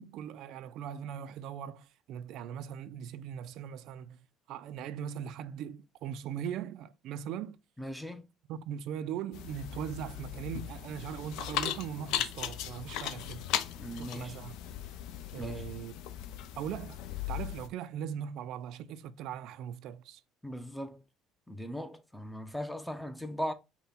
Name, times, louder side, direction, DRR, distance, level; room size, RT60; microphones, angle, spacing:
voice 1, 0.0-4.2 4.5-7.6 8.5-13.5 14.0-14.6 15.3-15.9 16.6-17.0 17.3-20.2, right 9 dB, 70° right, 0.4 m, -40 dB
voice 2, 7.8-8.3 13.8-14.4 15.3-15.6 20.4-21.0 21.5-23.5, equal, ahead, 0.6 m, -39 dB
sound 1, 9.3-17.7, left 11 dB, 75° left, 0.6 m, -38 dB
5.6 x 2.2 x 4.1 m
cardioid pair, 135°, 0 cm